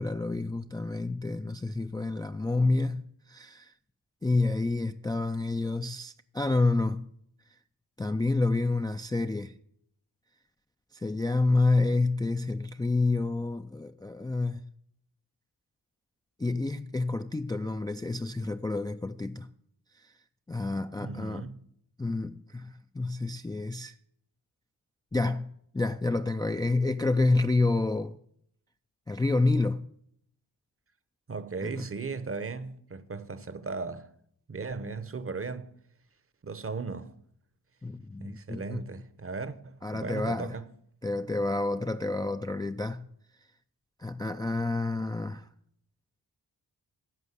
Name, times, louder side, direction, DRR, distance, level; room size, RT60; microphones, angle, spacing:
voice 1, 0.0-3.7 4.2-7.1 8.0-9.5 10.9-14.6 16.4-19.5 20.5-21.4 22.0-23.9 25.1-28.2 29.1-29.9 31.6-31.9 37.8-38.8 39.8-40.6 41.0-43.1 44.0-45.5, left 2 dB, 10° left, 0.4 m, -29 dB
voice 2, 21.0-21.6 31.3-34.1 34.5-35.7 36.4-37.1 38.2-40.7, right 4 dB, 35° right, 0.8 m, -37 dB
11.0 x 7.2 x 8.1 m
cardioid pair, 80°, 41 cm